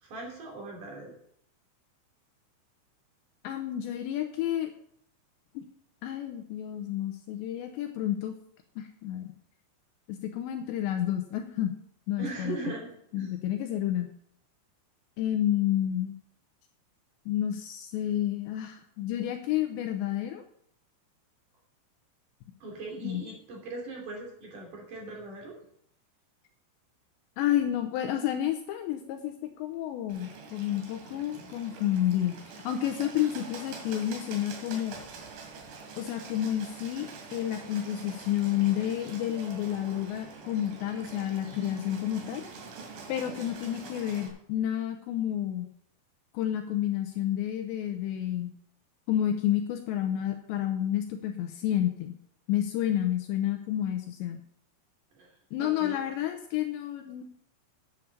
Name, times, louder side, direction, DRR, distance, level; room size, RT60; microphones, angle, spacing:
voice 1, 0.0-1.1 12.2-13.3 22.6-25.6 55.1-56.0, right 3 dB, 45° right, -1 dB, 3.7 m, -40 dB
voice 2, 3.4-4.7 5.6-5.7 6.0-8.4 8.8-9.3 10.1-11.7 12.1-12.7 13.1-14.1 15.2-16.1 17.3-20.4 23.0-23.2 27.4-34.9 36.0-42.5 43.1-45.7 46.3-48.5 49.1-52.2 52.5-54.4 55.5-57.2, left 11 dB, 80° left, 6 dB, 2.7 m, -30 dB
Bird, 30.1-44.3, right 4 dB, 85° right, 4.8 m, -45 dB
9.3 x 8.3 x 7.0 m, 0.69 s
omnidirectional pair, 5.7 m